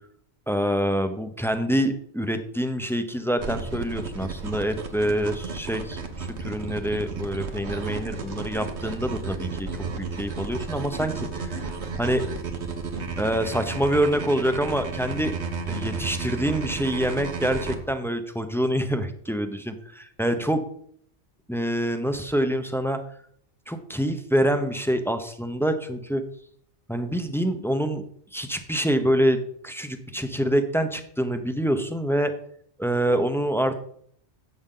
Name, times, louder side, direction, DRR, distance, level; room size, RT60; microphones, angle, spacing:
voice 1, 0.5-9.7 10.0-11.6 12.0-12.2 13.2-15.4 15.7-20.6 21.5-23.0 23.7-26.2 26.9-28.0 28.3-32.3 32.8-33.8, equal, 5° left, 8 dB, 0.6 m, -26 dB
sound 1, 3.4-17.8, right 4 dB, 75° right, 1.4 m, -33 dB
11.0 x 7.8 x 3.9 m, 0.64 s
omnidirectional pair, 1.1 m